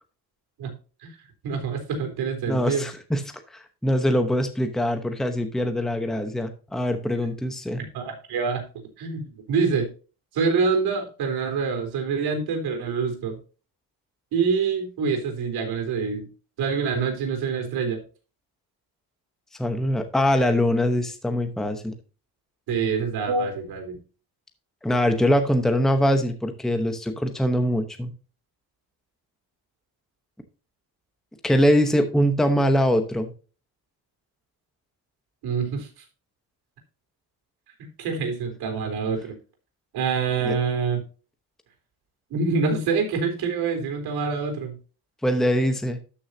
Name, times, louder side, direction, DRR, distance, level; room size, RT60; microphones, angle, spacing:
voice 1, 1.4-2.9 7.9-8.6 9.0-9.9 10.3-13.4 14.3-16.3 16.6-18.0 22.7-24.0 35.4-36.0 38.0-39.3 39.9-41.0 42.3-44.8, right 5 dB, 75° right, 4 dB, 3.7 m, -26 dB
voice 2, 2.5-3.2 3.5-7.8 19.6-21.9 24.8-28.1 31.4-33.3 40.4-40.6 45.2-46.0, equal, ahead, 6 dB, 0.9 m, -23 dB
13.0 x 6.3 x 2.7 m, 0.35 s
cardioid pair, 175°, 39 cm